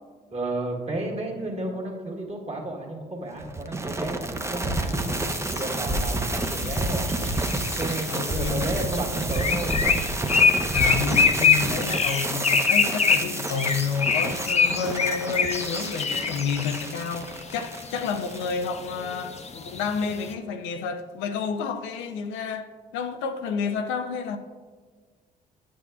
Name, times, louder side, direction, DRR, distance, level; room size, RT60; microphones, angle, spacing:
voice 1, 0.3-5.2 5.5-7.1 7.8-9.8, right 2 dB, 30° right, 1.7 m, -32 dB
sound 1, 3.4-18.7, right 2 dB, 15° right, 0.7 m, -30 dB
sound 2, 4.8-20.3, left 5 dB, 35° left, 0.7 m, -26 dB
voice 2, 8.1-8.9 10.7-24.4, left 5 dB, 70° left, 0.5 m, -30 dB
9.4 x 6.1 x 2.3 m
hypercardioid pair, 50°, 20 cm